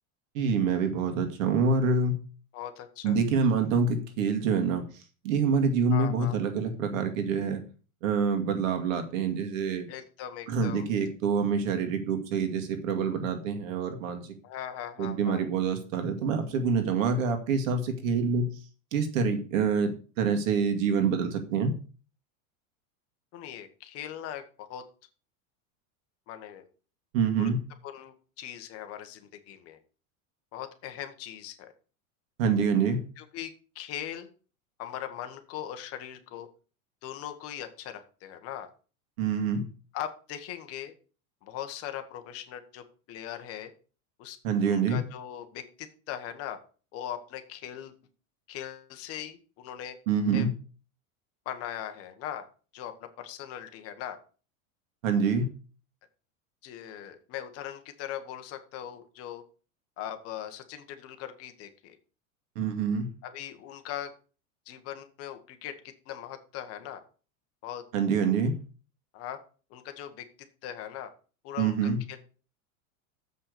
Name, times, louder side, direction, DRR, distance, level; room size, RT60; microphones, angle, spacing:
voice 1, 0.3-2.2 3.0-4.8 5.2-7.6 8.0-9.9 10.5-14.3 15.0-18.5 18.9-21.7 27.1-27.6 32.4-33.0 39.2-39.6 44.4-45.0 50.1-50.5 55.0-55.5 62.6-63.1 67.9-68.5 71.6-72.0, right 5 dB, 70° right, 7 dB, 2.2 m, -26 dB
voice 2, 2.5-3.2 5.9-6.4 9.9-10.9 14.4-15.4 23.3-24.8 26.3-26.7 27.4-27.5 27.8-29.8 30.5-31.7 33.2-34.3 34.8-36.5 37.0-38.7 39.9-40.9 41.4-43.7 44.2-44.4 44.7-46.6 46.9-47.9 48.5-50.0 50.3-50.5 51.4-52.4 52.7-54.2 56.6-59.4 60.0-62.0 63.2-64.1 64.7-65.7 66.1-67.0 67.6-67.8 69.1-69.4 69.7-70.2 70.6-71.1 71.4-72.2, left 10 dB, 35° left, 7 dB, 1.2 m, -40 dB
7.5 x 5.5 x 6.8 m, 0.38 s
supercardioid pair, 160°, 41 cm